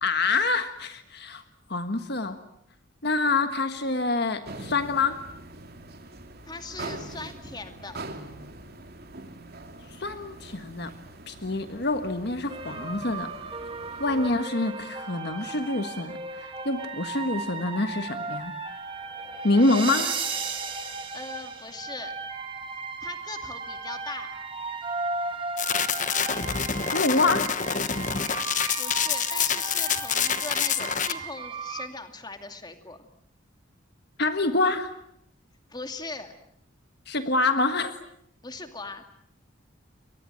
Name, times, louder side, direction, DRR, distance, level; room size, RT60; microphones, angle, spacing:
voice 1, 0.0-1.4 1.7-2.4 3.0-5.2 9.9-10.9 11.3-13.3 14.0-18.5 19.4-20.2 26.9-27.5 34.2-34.9 37.1-37.9, left 3 dB, 55° left, 8 dB, 1.5 m, -26 dB
sound 1, 4.4-14.4, right 2 dB, 50° right, 2.8 m, -43 dB
voice 2, 6.4-8.0 21.1-22.1 23.0-24.3 28.7-33.0 35.7-36.3 38.4-39.0, left 3 dB, 20° left, 6 dB, 2.4 m, -39 dB
sound 2, 12.5-31.9, right 4 dB, 25° right, 2.8 m, -35 dB
sound 3, 25.6-31.1, left 7 dB, 40° left, 1.3 m, -27 dB
29.5 x 23.5 x 7.7 m, 0.75 s
head